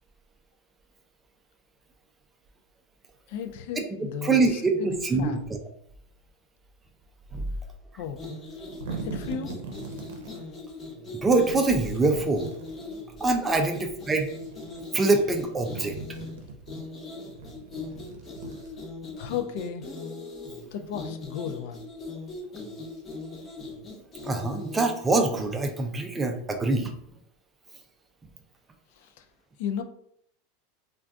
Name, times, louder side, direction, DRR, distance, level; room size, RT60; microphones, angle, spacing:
voice 1, 3.3-5.5 8.0-8.2 9.0-9.6 19.2-19.9 20.7-21.8 28.9-29.2 29.6-29.8, left 8 dB, 65° left, 8 dB, 0.3 m, -34 dB
voice 2, 4.2-5.4 7.3-7.5 11.2-12.5 13.2-14.3 14.9-16.0 24.2-26.9, right 3 dB, 15° right, 5 dB, 0.4 m, -24 dB
sound 1, 8.1-25.2, left 3 dB, 25° left, 0.7 m, -40 dB
sound 2, 8.5-10.4 11.2-12.8 13.8-14.8 15.2-16.7 17.3-19.1, right 4 dB, 85° right, 0.6 m, -41 dB
2.5 x 2.3 x 3.5 m, 0.69 s
supercardioid pair, 140°, 0 cm